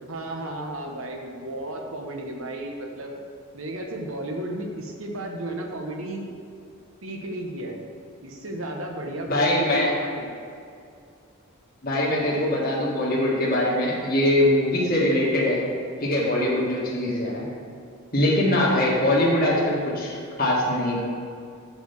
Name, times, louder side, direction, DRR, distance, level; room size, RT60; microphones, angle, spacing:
voice 1, 0.0-3.2 3.5-6.3 7.0-7.8 8.2-10.3, right 1 dB, 80° right, 1 dB, 1.2 m, -33 dB
voice 2, 9.3-9.9 11.8-15.6 16.0-17.4 18.1-21.0, left 1 dB, 45° left, -6 dB, 1.7 m, -22 dB
7.6 x 4.8 x 7.1 m, 2.4 s
head